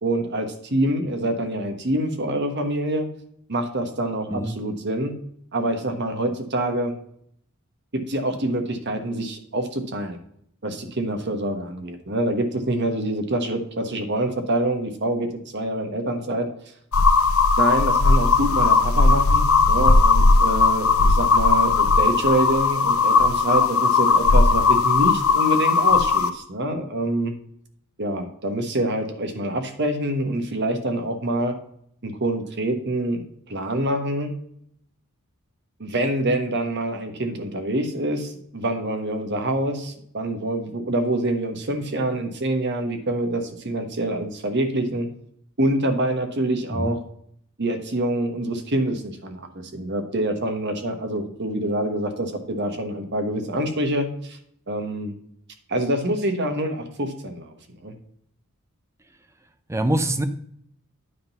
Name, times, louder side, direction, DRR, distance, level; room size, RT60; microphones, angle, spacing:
voice 1, 0.0-3.1 3.5-5.1 5.5-7.0 7.9-10.2 10.6-16.5 17.6-27.3 28.0-31.5 32.0-33.2 33.5-34.3 35.8-45.1 45.6-47.0 47.6-54.4 54.7-55.2 55.7-57.9, right 1 dB, 50° right, 5 dB, 1.3 m, -26 dB
sound 1, 16.9-26.3, left 4 dB, 70° left, 0.7 m, -17 dB
voice 2, 59.7-60.2, right 1 dB, 15° right, 10 dB, 0.6 m, -24 dB
9.7 x 3.9 x 5.4 m, 0.67 s
head